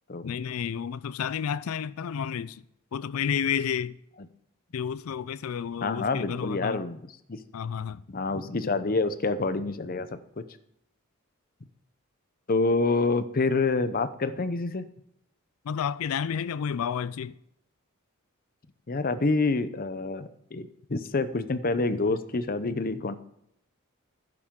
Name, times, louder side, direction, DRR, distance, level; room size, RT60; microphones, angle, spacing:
voice 1, 0.2-2.6 2.9-4.0 4.7-6.9 7.5-8.0 15.6-17.3, left 7 dB, 85° left, 0.4 m, -31 dB
voice 2, 5.8-7.4 8.1-10.4 12.5-14.9 18.9-23.2, left 3 dB, 45° left, 0.7 m, -27 dB
12.0 x 9.7 x 3.7 m
head